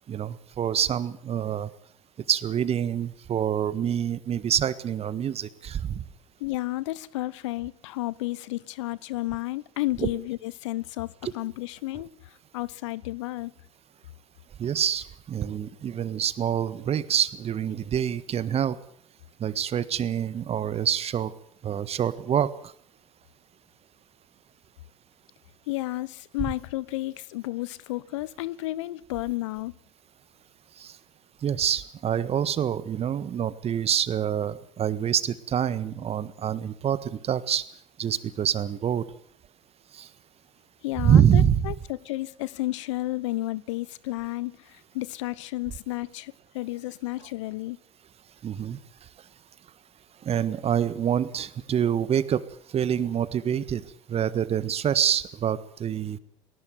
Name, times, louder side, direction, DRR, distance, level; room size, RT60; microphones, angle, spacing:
voice 1, 0.1-1.7 2.3-6.0 10.0-10.1 11.2-11.3 14.6-18.8 19.4-21.3 21.6-22.5 30.8-30.9 31.4-37.6 38.0-39.1 39.9-40.1 41.0-41.7 48.4-48.8 50.2-52.4 52.7-53.8 54.1-56.2, right 9 dB, 40° right, 1.6 m, -26 dB
voice 2, 6.4-12.1 12.5-13.5 25.7-29.7 40.8-47.8, left 18 dB, 75° left, 0.8 m, -32 dB
19.5 x 18.5 x 9.3 m
hypercardioid pair, 70°, 16 cm